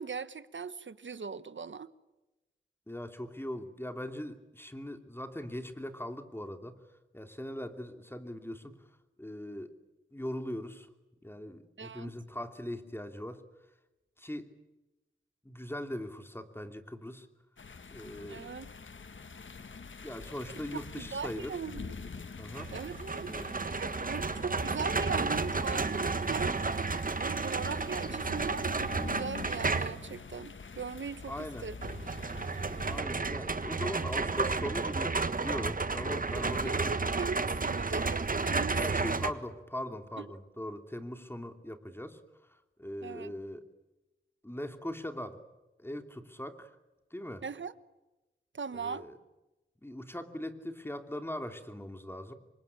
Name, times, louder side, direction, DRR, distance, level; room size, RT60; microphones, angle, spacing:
voice 1, 0.0-1.9 11.8-12.1 18.3-18.7 20.7-21.9 22.7-23.3 23.6-26.6 27.1-31.8 36.6-39.2 40.2-40.3 43.0-43.3 47.4-47.7 48.5-49.1, right 5 dB, 70° right, 15 dB, 1.2 m, -39 dB
voice 2, 2.9-6.8 7.1-8.8 9.2-9.7 10.1-10.9 11.2-13.4 14.2-14.5 15.4-17.3 17.9-18.4 20.0-21.5 22.4-22.7 23.3-23.5 31.3-31.7 32.9-36.9 38.7-42.2 42.8-43.6 44.4-45.4 45.8-46.7 47.1-47.4 48.7-49.1 49.8-52.3, left 1 dB, 10° left, 7 dB, 2.9 m, -40 dB
sound 1, 17.6-33.0, left 4 dB, 75° left, 1.5 m, -46 dB
sound 2, 22.5-30.1 31.8-39.3, right 3 dB, 45° right, 1.5 m, -32 dB
27.5 x 24.0 x 8.6 m, 1.0 s
wide cardioid pair, 75°, 20 cm